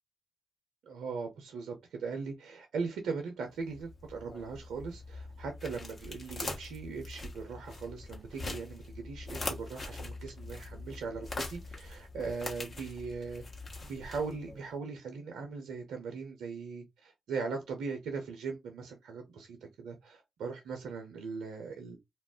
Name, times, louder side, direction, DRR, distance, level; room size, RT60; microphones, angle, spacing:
voice 1, 0.8-13.4 13.8-22.0, right 4 dB, 75° right, 0.5 m, -39 dB
sound 1, 3.6-14.6, left 2 dB, 45° left, 1.0 m, -43 dB
2.3 x 2.1 x 3.5 m
hypercardioid pair, 45°, 0 cm